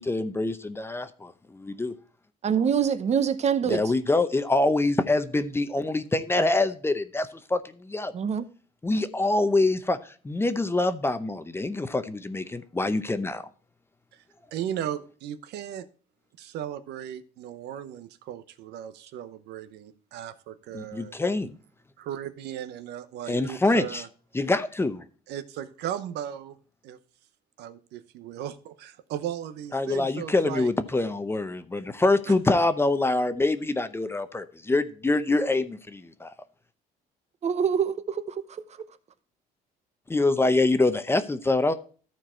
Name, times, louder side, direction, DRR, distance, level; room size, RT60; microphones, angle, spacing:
voice 1, 0.0-1.9 3.7-8.1 8.8-10.0 10.2-13.4 20.7-21.6 23.3-24.0 24.3-25.0 29.7-36.3 40.1-41.7, left 2 dB, 15° left, 0.7 m, -25 dB
voice 2, 2.4-3.8 8.1-8.4 37.4-38.3 38.8-38.9, right 7 dB, 40° right, 0.8 m, -25 dB
voice 3, 14.5-15.9 16.4-21.2 22.0-24.1 25.3-26.6 26.8-27.0 27.6-30.7 32.3-32.4, right 10 dB, 80° right, 0.8 m, -36 dB
13.5 x 4.6 x 4.3 m
cardioid pair, 110°, 17 cm